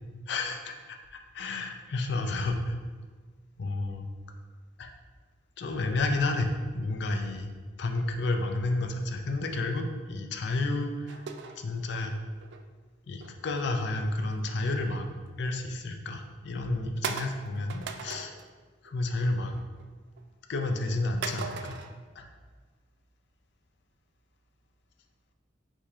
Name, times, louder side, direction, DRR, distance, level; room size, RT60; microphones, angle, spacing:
voice 1, 0.3-1.0 1.3-2.7 3.6-4.1 4.8-4.9 5.6-7.5 7.8-11.2 11.6-12.2 13.1-18.3 18.8-19.6 20.5-21.8 22.2-22.3, left 2 dB, 60° left, 4 dB, 0.4 m, -31 dB
sound 1, 11.1-12.6 13.2-14.5 14.9-15.1 15.6-15.7 16.3-16.4 17.0-18.5 18.9-19.3 19.5-20.2 21.2-21.9, right 5 dB, 60° right, 0.3 m, -39 dB
4.9 x 2.8 x 3.5 m, 1.4 s
head